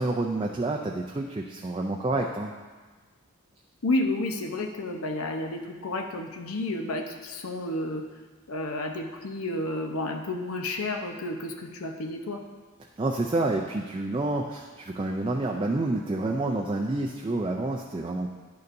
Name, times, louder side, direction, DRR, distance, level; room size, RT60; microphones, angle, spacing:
voice 1, 0.0-2.5 13.0-18.3, right 2 dB, 25° right, 1 dB, 0.4 m, -28 dB
voice 2, 3.8-8.0 8.5-12.4, left 2 dB, 80° left, 2 dB, 0.8 m, -31 dB
10.5 x 6.7 x 2.6 m, 1.4 s
head